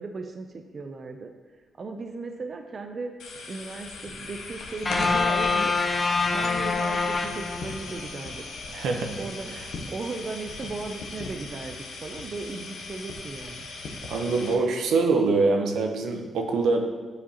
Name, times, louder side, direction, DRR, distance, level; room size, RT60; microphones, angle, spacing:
voice 1, 0.0-1.3 1.8-3.1 3.5-5.7 6.3-8.3 9.2-9.6 9.9-13.7, right 3 dB, 35° right, 5 dB, 0.4 m, -36 dB
sound 1, 3.2-14.5, left 3 dB, 90° left, 0.8 m, -38 dB
sound 2, 4.9-8.1, left 4 dB, 25° left, 0.4 m, -25 dB
voice 2, 8.7-9.2 14.1-16.8, right 3 dB, 90° right, 3 dB, 0.7 m, -24 dB
8.3 x 4.9 x 2.8 m, 1.3 s
cardioid pair, 135°, 0 cm